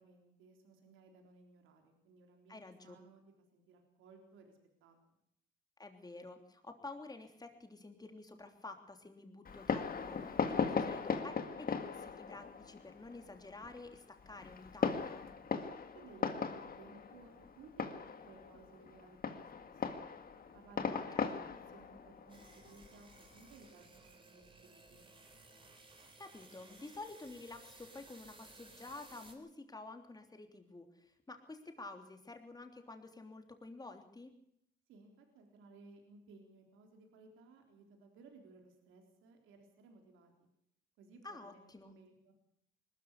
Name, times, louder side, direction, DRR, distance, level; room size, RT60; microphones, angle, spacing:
voice 1, 0.0-3.2 3.5-5.2 15.6-20.0 20.5-21.2 21.7-25.1 34.9-40.3 41.0-42.3, right 4 dB, 90° right, 3 dB, 3.7 m, -60 dB
voice 2, 2.5-3.0 5.8-15.2 20.9-21.5 26.2-34.3 41.2-41.9, left 3 dB, 20° left, 5 dB, 3.2 m, -50 dB
Fireworks, 9.4-23.6, left 5 dB, 45° left, 2.0 m, -39 dB
sound 1, 22.3-29.3, right 2 dB, 25° right, 4.6 m, -59 dB
20.0 x 13.5 x 9.8 m, 0.74 s
cardioid pair, 90°, 20 cm